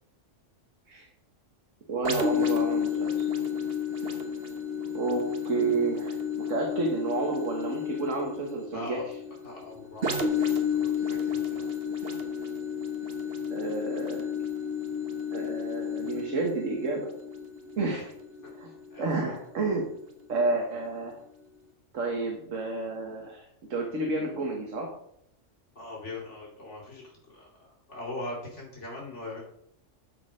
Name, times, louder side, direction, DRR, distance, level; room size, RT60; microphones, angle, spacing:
voice 1, 1.9-3.2 4.9-9.1 13.5-14.3 15.3-17.1 17.8-18.1 18.6-18.7 19.0-19.8 20.3-21.2 21.9-23.4 23.7-24.9, right 3 dB, 85° right, 1 dB, 1.8 m, -30 dB
sound 1, 2.0-19.6 20.1-20.2, left 6 dB, 50° right, 1.4 m, -31 dB
voice 2, 8.7-9.0 9.4-11.6 17.9-18.0 18.4-18.5 18.9-19.1 25.7-27.5 27.9-29.4, left 2 dB, 70° left, -3 dB, 2.9 m, -41 dB
13.0 x 4.4 x 5.0 m, 0.72 s
omnidirectional pair, 1.3 m